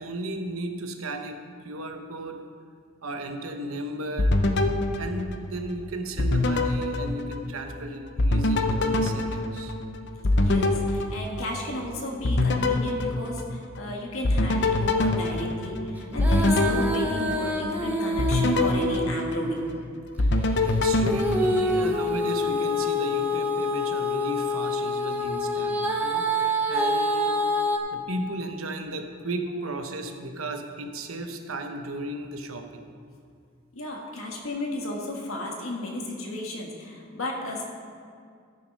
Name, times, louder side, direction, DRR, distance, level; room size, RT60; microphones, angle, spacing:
voice 1, 0.0-2.4 3.0-4.4 5.0-9.8 20.2-20.3 20.6-27.5 27.9-32.8, right 1 dB, 90° right, 5 dB, 1.0 m, -35 dB
sound 1, 4.2-5.8 6.2-7.8 8.2-11.8 12.2-13.8 14.2-17.7 18.2-19.8 20.2-22.1, left 2 dB, 55° left, 0.7 m, -25 dB
voice 2, 10.4-19.6 33.7-37.6, left 2 dB, 80° left, 0 dB, 1.6 m, -34 dB
Female singing, 16.1-19.9 21.1-27.8, left 1 dB, 10° right, 0.8 m, -27 dB
12.5 x 6.7 x 5.3 m, 2.2 s
head